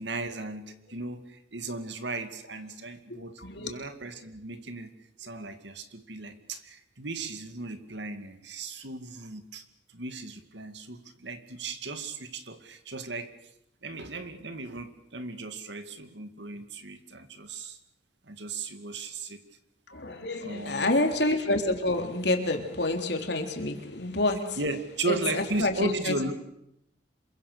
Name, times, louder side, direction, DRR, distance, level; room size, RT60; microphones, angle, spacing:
voice 1, 0.0-4.9 5.2-13.4 13.8-17.8 18.2-19.4 20.4-21.0 24.6-26.3, right 2 dB, 70° right, 9 dB, 2.3 m, -36 dB
voice 2, 3.1-3.7 19.9-24.6 25.1-26.3, left 2 dB, 65° left, 4 dB, 3.6 m, -28 dB
27.0 x 23.0 x 6.8 m, 0.78 s
head